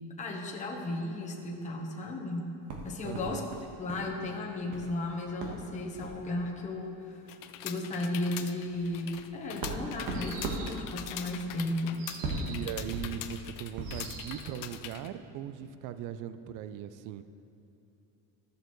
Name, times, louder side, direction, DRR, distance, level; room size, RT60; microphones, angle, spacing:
voice 1, 0.2-3.5 3.8-7.2 7.6-12.1, left 1 dB, 20° left, -1 dB, 0.9 m, -35 dB
sound 1, 2.7-4.1 4.4-4.9 5.4-5.6 6.0-6.2 7.1-7.2 7.6-7.7 8.2-14.1, right 2 dB, 70° right, 1.5 m, -39 dB
voice 2, 3.0-3.4 12.5-17.2, right 10 dB, 55° right, 12 dB, 0.5 m, -39 dB
sound 2, 7.3-15.1, left 11 dB, 55° left, 0.5 m, -43 dB
sound 3, 10.1-10.9 12.0-12.7 13.8-14.6, right 6 dB, 85° right, 1.1 m, -46 dB
13.5 x 6.7 x 3.1 m, 2.9 s
cardioid pair, 140°, 40 cm